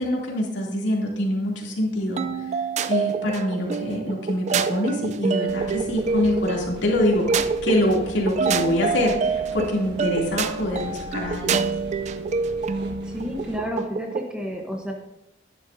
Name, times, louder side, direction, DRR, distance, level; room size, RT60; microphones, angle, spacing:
voice 1, 0.0-2.3 2.9-11.7, left 1 dB, 90° left, -2 dB, 2.7 m, -25 dB
sound 1, 2.2-14.3, right 5 dB, 40° right, 0.3 m, -27 dB
sound 2, 5.5-13.6, equal, 70° right, 1.4 m, -41 dB
voice 2, 13.0-14.9, equal, 5° right, 1 dB, 0.9 m, -31 dB
11.5 x 10.0 x 2.6 m, 0.90 s
head